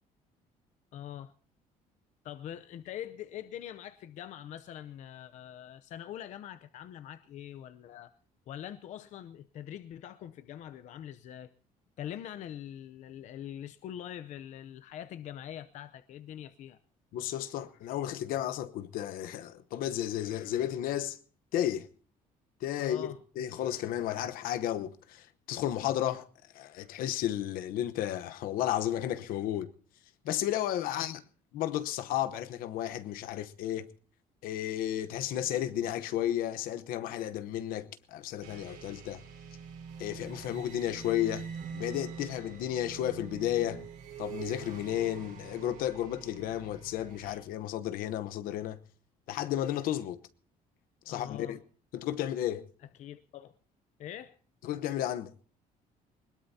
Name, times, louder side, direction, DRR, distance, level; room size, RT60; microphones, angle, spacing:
voice 1, 0.9-1.3 2.2-8.1 8.5-11.5 12.0-16.8 22.8-23.2 30.9-31.1 51.1-51.6 53.0-53.5 54.0-54.4, left 10 dB, 55° left, 0.7 m, -43 dB
voice 2, 17.1-21.2 21.5-21.9 22.6-26.3 26.5-29.7 30.2-31.2 31.5-33.9 34.4-39.2 40.0-41.5 41.7-43.9 44.2-48.8 49.3-50.2 51.1-51.6 51.9-52.7 54.6-55.3, left 12 dB, 75° left, 1.0 m, -33 dB
sound 1, 38.4-47.4, right 7 dB, 65° right, 4.9 m, -45 dB
21.5 x 20.5 x 2.8 m
cardioid pair, 160°, 15 cm